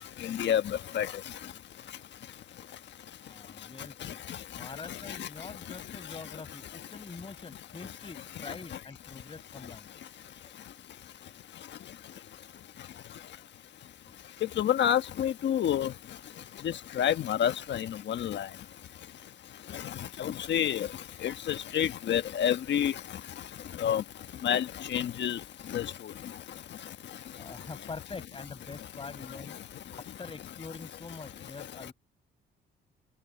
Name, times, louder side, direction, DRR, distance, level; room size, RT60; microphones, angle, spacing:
voice 1, 0.2-1.1 5.2-5.3 14.6-15.9 16.6-18.5 20.2-20.9 21.2-22.9 23.8-24.0 24.4-25.4 25.7-25.9, left 10 dB, 65° left, 1.4 m, -28 dB
voice 2, 3.2-4.2 4.6-9.9 10.4-10.5 27.4-29.6 29.9-31.9, left 4 dB, 25° left, 5.4 m, -45 dB
open air
cardioid pair, 90°, 20 cm